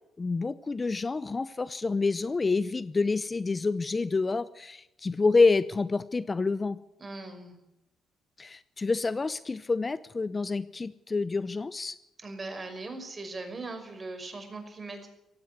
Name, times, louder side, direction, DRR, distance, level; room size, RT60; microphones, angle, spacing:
voice 1, 0.2-6.8 8.4-12.0, left 3 dB, 25° left, 16 dB, 0.7 m, -28 dB
voice 2, 7.0-7.6 12.2-15.1, right 3 dB, 30° right, 7 dB, 5.6 m, -39 dB
17.0 x 16.5 x 9.7 m, 0.87 s
cardioid pair, 90°, 0 cm